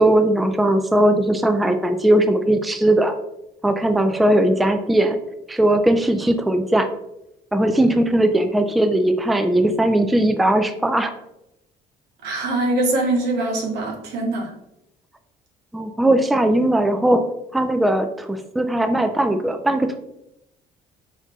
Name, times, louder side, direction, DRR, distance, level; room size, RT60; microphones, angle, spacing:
voice 1, 0.0-3.1 3.6-5.2 5.5-6.9 7.5-11.1 15.7-17.2 17.5-20.0, right 1 dB, ahead, 7 dB, 0.3 m, -18 dB
voice 2, 12.2-14.5, right 2 dB, 85° right, 2 dB, 1.1 m, -23 dB
4.1 x 4.0 x 3.0 m, 0.84 s
cardioid pair, 110°, 17 cm